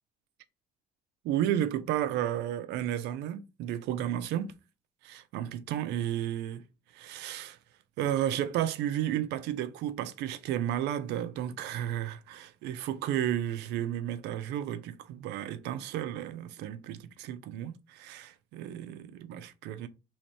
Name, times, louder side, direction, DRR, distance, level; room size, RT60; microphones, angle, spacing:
voice 1, 1.2-4.5 5.0-6.6 6.9-7.6 8.0-19.9, right 11 dB, 85° right, 0.6 m, -33 dB
3.2 x 3.1 x 4.3 m
cardioid pair, 110°, 17 cm